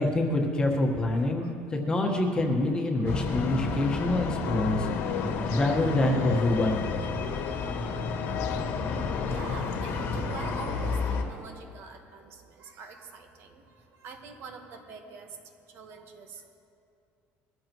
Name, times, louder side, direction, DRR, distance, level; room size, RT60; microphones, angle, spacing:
voice 1, 0.0-4.9 5.5-7.1, left 1 dB, 15° left, 0 dB, 1.4 m, -26 dB
voice 2, 1.1-1.5 3.0-3.3 4.5-4.7 5.3-5.5 8.8-13.6 13.9-15.4 15.7-16.5, right 5 dB, 55° right, 4 dB, 1.4 m, -45 dB
sound 1, 3.1-11.2, left 4 dB, 55° left, 1.5 m, -31 dB
sound 2, 3.3-9.4, left 9 dB, 35° left, 0.6 m, -42 dB
sound 3, 4.4-10.7, left 12 dB, 85° left, 0.6 m, -39 dB
21.5 x 14.5 x 3.1 m, 2.6 s
cardioid pair, 160°, 5 cm